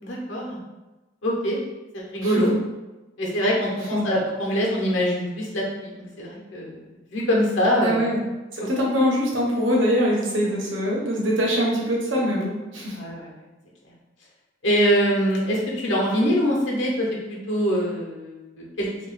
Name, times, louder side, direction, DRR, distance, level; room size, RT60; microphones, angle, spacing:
voice 1, 0.0-0.6 1.2-1.6 1.9-2.5 3.2-6.8 7.1-8.0 13.0-13.3 14.6-17.1 17.5-18.9, equal, 70° left, -3 dB, 0.9 m, -23 dB
voice 2, 7.8-8.2 8.5-13.0, equal, 80° right, -3 dB, 1.0 m, -23 dB
2.9 x 2.5 x 4.0 m, 1.1 s
head